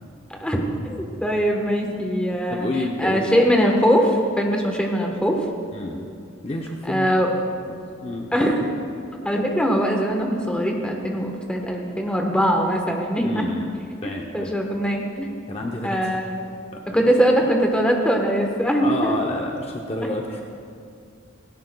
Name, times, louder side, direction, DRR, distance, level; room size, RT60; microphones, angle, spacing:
voice 1, 0.3-2.7 3.0-5.4 6.8-7.3 8.3-8.7 9.2-13.4 14.3-15.3 15.8-16.4 16.9-19.1, equal, 5° left, 1 dB, 1.1 m, -21 dB
voice 2, 2.5-3.4 5.7-6.1 6.4-7.1 7.7-7.8 8.0-8.4 13.2-14.5 15.5-16.1 16.7-17.1 18.8-20.4, left 2 dB, 30° left, 1 dB, 0.7 m, -29 dB
17.0 x 16.5 x 2.3 m, 2.4 s
head